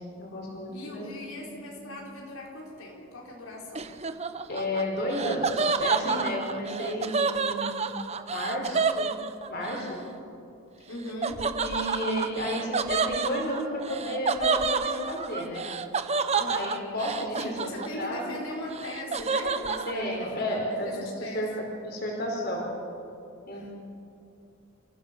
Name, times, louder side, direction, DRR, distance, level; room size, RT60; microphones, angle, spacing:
voice 1, 0.2-1.0 1.4-1.5 1.7-1.8 4.5-7.9 8.3-9.1 9.5-9.9 11.6-15.6 16.5-18.3 19.9-21.5 21.8-22.7 23.5-23.7, equal, 50° left, 0 dB, 4.4 m, -32 dB
voice 2, 0.7-3.9 9.7-10.2 10.9-11.5 16.3-16.7 17.4-21.6 23.5-23.7, left 1 dB, 85° left, -2 dB, 4.6 m, -39 dB
Laughter, 3.7-9.8 11.2-18.2 18.5-19.9, right 4 dB, 30° right, 0.8 m, -29 dB
28.0 x 15.5 x 6.8 m, 2.6 s
head